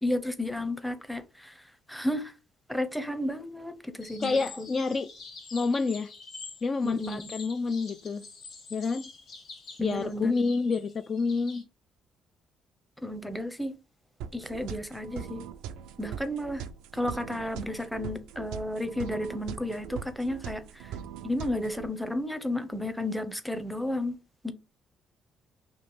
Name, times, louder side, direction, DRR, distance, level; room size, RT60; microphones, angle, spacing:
voice 1, 0.0-2.3 2.7-4.7 6.8-7.3 9.8-10.3 13.0-13.7 14.3-15.4 16.0-16.6 16.9-21.0 21.2-24.2 24.4-24.5, left 1 dB, ahead, 0.7 m, -32 dB
sound 1, 4.0-11.6, left 4 dB, 65° left, 1.3 m, -46 dB
voice 2, 4.2-5.1 5.5-6.1 6.6-8.2 8.7-9.1 9.8-11.6, left 4 dB, 40° left, 0.3 m, -28 dB
sound 2, 14.2-21.9, right 8 dB, 90° right, 0.3 m, -41 dB
3.1 x 2.5 x 4.1 m
supercardioid pair, 75°, 0 cm